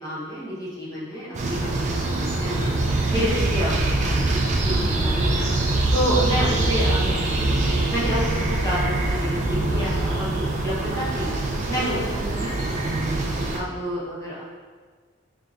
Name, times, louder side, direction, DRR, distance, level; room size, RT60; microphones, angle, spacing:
voice 1, 0.0-2.7 3.1-4.4 4.6-5.4 5.9-7.6 7.9-8.2 8.5-11.3 11.7-14.4, equal, 15° left, -8 dB, 0.7 m, -29 dB
sound 1, 1.3-13.6, right 2 dB, 35° right, 0.3 m, -24 dB
3.8 x 3.4 x 2.4 m, 1.5 s
head